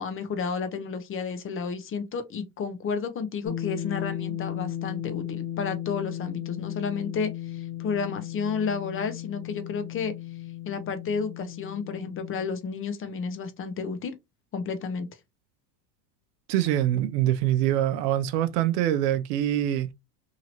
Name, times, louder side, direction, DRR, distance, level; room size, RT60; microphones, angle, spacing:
voice 1, 0.0-10.1 10.7-14.1 14.5-15.1, left 5 dB, 25° left, 0.6 m, -31 dB
sound 1, 3.5-12.5, left 12 dB, 55° left, 1.2 m, -35 dB
voice 2, 16.5-19.9, right 12 dB, 70° right, 0.7 m, -24 dB
2.8 x 2.8 x 2.8 m
supercardioid pair, 105°, 49 cm